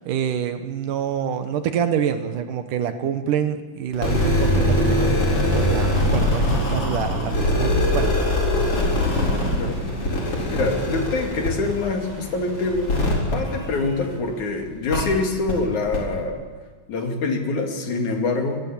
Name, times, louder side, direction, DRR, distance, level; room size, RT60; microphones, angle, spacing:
voice 1, 0.0-8.1, right 8 dB, 80° right, 9 dB, 2.9 m, -26 dB
sound 1, 3.9-14.3 14.9-15.0 15.5-15.6 15.9-16.0, left 1 dB, 45° left, 5.3 m, -22 dB
sound 2, 5.4-13.3, equal, 55° right, 6.3 m, -39 dB
voice 2, 10.5-13.1 13.3-16.4 16.9-18.6, left 3 dB, 65° left, 3 dB, 3.9 m, -25 dB
25.0 x 21.0 x 7.4 m, 1.5 s
omnidirectional pair, 3.7 m